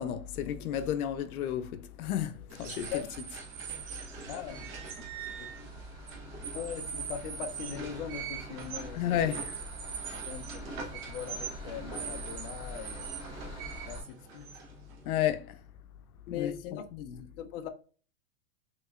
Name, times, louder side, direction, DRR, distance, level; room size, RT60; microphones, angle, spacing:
voice 1, 0.0-3.0 8.9-9.6 15.1-15.6 16.3-16.5 16.9-17.3, left 10 dB, 85° left, 0.7 m, -32 dB
sound 1, 2.5-15.2, right 6 dB, 40° right, 1.2 m, -42 dB
sound 2, 3.0-14.0, right 1 dB, 10° right, 1.9 m, -47 dB
voice 2, 4.3-4.7 5.4-5.7 6.5-9.4 10.1-13.1 13.8-14.5 16.3-16.8 17.4-17.7, left 9 dB, 45° left, 0.5 m, -40 dB
6.0 x 2.9 x 2.4 m
supercardioid pair, 160°, 43 cm